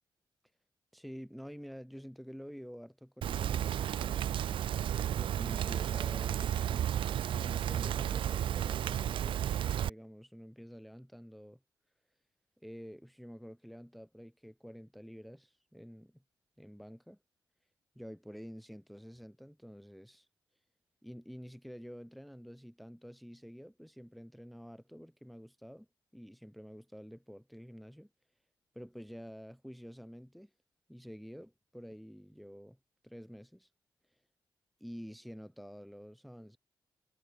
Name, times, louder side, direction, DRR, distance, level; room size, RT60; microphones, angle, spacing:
voice 1, 0.9-4.3 5.1-6.9 7.3-9.4 9.8-11.6 12.6-16.1 16.6-17.2 18.0-20.3 21.0-25.9 26.1-28.1 28.7-30.5 30.9-32.8 33.0-33.7 34.8-36.6, equal, ahead, 1.9 m, -49 dB
Rain, 3.2-9.9, right 10 dB, 90° right, 0.8 m, -33 dB
wide cardioid pair, 175°, 8 cm